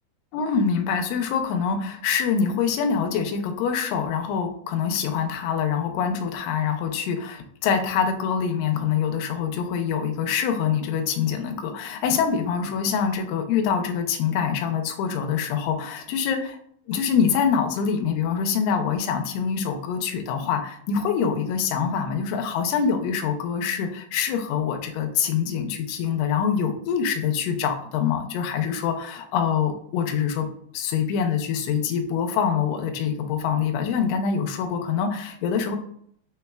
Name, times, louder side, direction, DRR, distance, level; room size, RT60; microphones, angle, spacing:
voice 1, 0.3-16.4 16.9-30.5 30.7-35.8, left 7 dB, 85° left, 4 dB, 2.5 m, -25 dB
6.4 x 3.2 x 2.2 m, 0.66 s
omnidirectional pair, 4.7 m